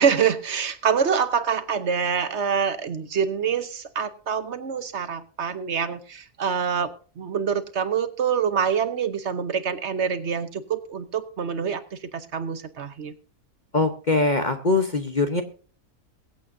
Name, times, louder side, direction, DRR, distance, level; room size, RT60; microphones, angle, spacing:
voice 1, 0.0-6.9 7.2-13.1, right 7 dB, 50° right, 11 dB, 1.0 m, -25 dB
voice 2, 13.7-15.4, left 3 dB, 35° left, 6 dB, 0.9 m, -22 dB
22.5 x 8.5 x 2.6 m, 0.39 s
omnidirectional pair, 1.7 m